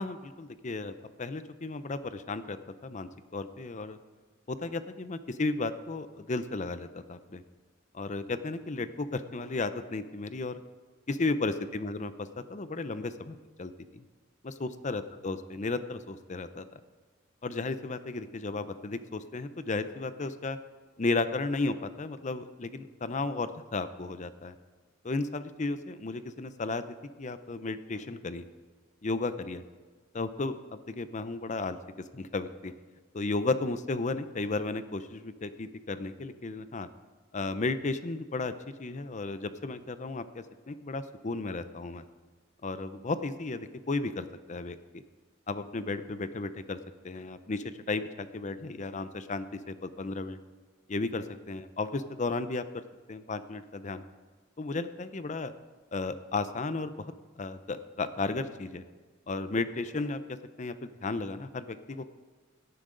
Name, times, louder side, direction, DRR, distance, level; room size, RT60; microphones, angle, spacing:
voice 1, 0.0-2.6 2.8-4.0 4.5-7.4 7.9-10.6 11.1-12.1 12.5-14.1 14.4-16.8 17.4-20.6 21.0-24.6 25.0-26.9 27.2-28.4 29.0-29.6 30.1-30.6 30.9-31.8 32.1-32.7 33.1-36.9 37.3-38.5 38.8-42.0 42.6-45.0 45.5-46.8 47.0-50.4 50.9-52.6 53.1-54.0 54.6-55.5 55.9-58.8 59.3-62.0, left 3 dB, 40° left, 12 dB, 0.6 m, -34 dB
17.5 x 10.0 x 3.9 m, 1.4 s
head